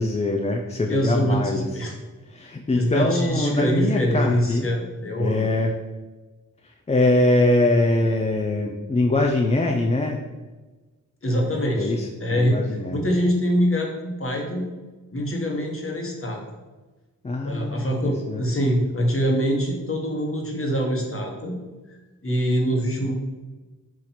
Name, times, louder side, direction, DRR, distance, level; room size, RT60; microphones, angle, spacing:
voice 1, 0.0-1.7 2.3-4.7 5.2-5.8 6.6-10.2 11.8-13.0 17.2-18.4, left 2 dB, 20° left, 2 dB, 0.4 m, -23 dB
voice 2, 0.9-1.9 2.7-5.4 11.2-11.9 12.2-12.6 12.9-14.7 15.1-16.4 17.4-21.6 22.2-23.1, equal, 35° left, 0 dB, 1.1 m, -24 dB
4.4 x 2.5 x 4.2 m, 1.2 s
cardioid pair, 45°, 36 cm